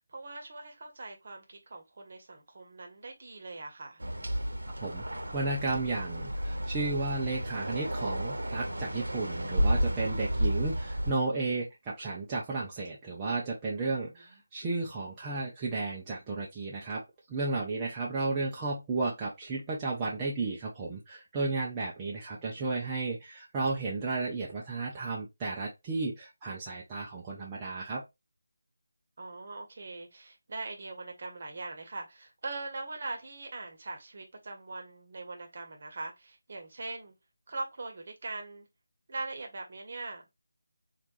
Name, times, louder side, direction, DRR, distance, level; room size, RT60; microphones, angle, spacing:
voice 1, 0.1-4.0 14.1-14.4 29.2-37.1 37.5-38.7 39.1-40.3, right 3 dB, 40° right, 1.0 m, -41 dB
sound 1, 4.0-11.1, equal, 65° right, 0.9 m, -32 dB
voice 2, 5.3-17.0 17.3-28.0, right 3 dB, 15° right, 0.6 m, -33 dB
4.5 x 2.5 x 2.6 m
figure-of-eight pair, 155°, 0 cm